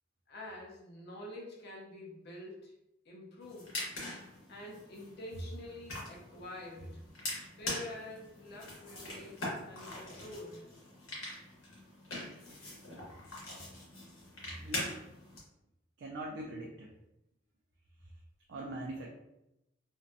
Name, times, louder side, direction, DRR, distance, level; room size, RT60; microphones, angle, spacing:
voice 1, 0.3-2.8 3.1-3.8 4.5-7.0 7.3-10.6, left 1 dB, 55° left, -3 dB, 0.7 m, -47 dB
sound 1, 3.4-15.4, left 1 dB, 85° left, 1.1 m, -43 dB
voice 2, 14.6-15.0 16.0-16.9 18.5-19.1, right 1 dB, 55° right, -2 dB, 0.4 m, -41 dB
2.6 x 2.2 x 2.6 m, 0.87 s
head